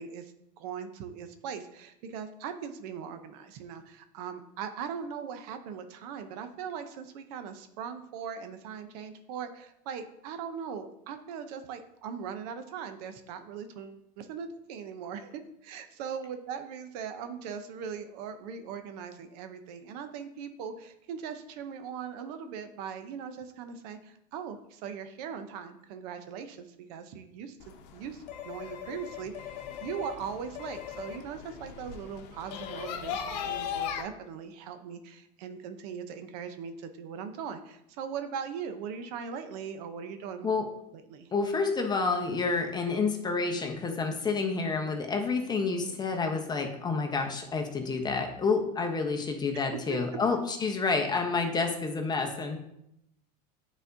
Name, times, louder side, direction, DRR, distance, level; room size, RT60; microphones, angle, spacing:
voice 1, 0.0-40.5 40.9-41.3 45.8-45.9 49.5-50.0, right 7 dB, 75° right, 8 dB, 0.7 m, -40 dB
sound 1, 27.6-34.0, left 8 dB, 80° left, 0.8 m, -38 dB
voice 2, 41.3-52.6, left 4 dB, 20° left, 3 dB, 0.9 m, -29 dB
8.9 x 4.1 x 2.7 m, 0.79 s
supercardioid pair, 120°, 21 cm